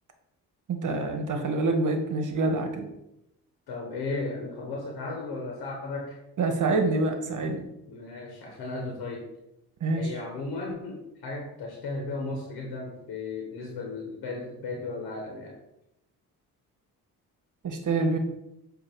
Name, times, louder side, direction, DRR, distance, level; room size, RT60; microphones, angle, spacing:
voice 1, 0.7-2.9 6.4-7.7 9.8-10.1 17.6-18.2, right 3 dB, 55° right, 6 dB, 1.2 m, -26 dB
voice 2, 3.7-6.2 7.9-9.3 9.9-15.6, left 3 dB, 75° left, 0 dB, 1.2 m, -35 dB
7.7 x 2.8 x 4.4 m, 0.87 s
cardioid pair, 75°, 38 cm